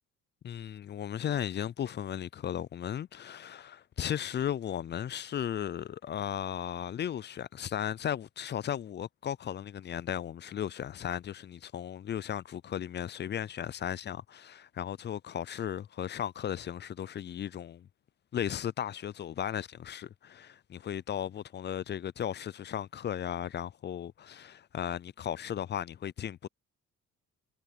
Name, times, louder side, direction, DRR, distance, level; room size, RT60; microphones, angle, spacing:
voice 1, 0.4-17.9 18.3-26.5, left 10 dB, 35° left, 0.4 m, -36 dB
cardioid pair, 90°, 30 cm